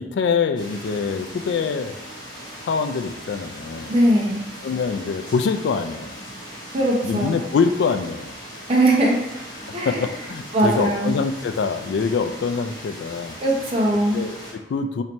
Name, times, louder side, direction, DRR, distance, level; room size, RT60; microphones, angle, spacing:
voice 1, 0.0-1.9 2.6-3.9 4.6-6.2 7.0-8.3 9.7-13.3 14.1-15.0, left 5 dB, 70° left, 8 dB, 0.3 m, -24 dB
Rain in the city - Medium rain - distant city hum, 0.5-14.5, equal, 25° left, 1.4 m, -38 dB
voice 2, 3.9-4.4 6.7-7.3 8.7-9.2 9.7-10.0 10.5-11.1 13.4-14.2, right 1 dB, 35° right, -4 dB, 0.9 m, -20 dB
3.2 x 2.9 x 4.3 m, 0.94 s
head